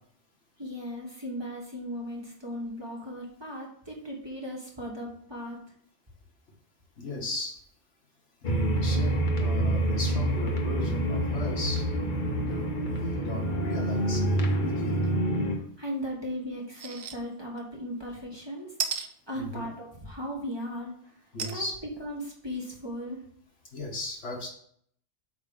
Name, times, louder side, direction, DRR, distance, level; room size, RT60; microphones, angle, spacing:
voice 1, 0.6-5.6 15.8-18.7 19.3-21.1 21.4-21.7 22.0-23.2, equal, 20° right, -2 dB, 1.5 m, -37 dB
voice 2, 7.0-7.6 8.4-15.1 19.3-19.7 21.3-21.8 23.7-24.5, left 2 dB, 80° left, -1 dB, 2.0 m, -37 dB
sound 1, 8.4-15.5, right 1 dB, 45° left, 1.2 m, -27 dB
sound 2, 16.8-17.1 17.6-17.7 18.8-19.1 21.4-21.6 22.2-22.3 22.5-22.6, right 6 dB, 60° right, 0.9 m, -32 dB
8.0 x 3.3 x 5.4 m, 0.64 s
omnidirectional pair, 1.2 m